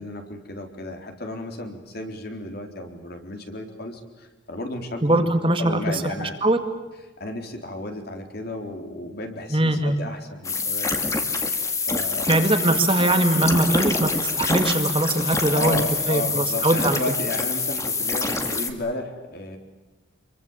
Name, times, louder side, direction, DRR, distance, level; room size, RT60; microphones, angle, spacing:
voice 1, 0.0-6.4 7.2-11.0 11.8-12.5 15.5-19.6, left 2 dB, 50° left, 4 dB, 3.9 m, -33 dB
voice 2, 5.0-6.6 9.5-10.0 12.3-17.0, right 2 dB, 25° right, 7 dB, 2.0 m, -21 dB
sound 1, 10.4-18.7, left 3 dB, 15° left, 2.1 m, -26 dB
27.5 x 23.5 x 7.4 m, 1.2 s
head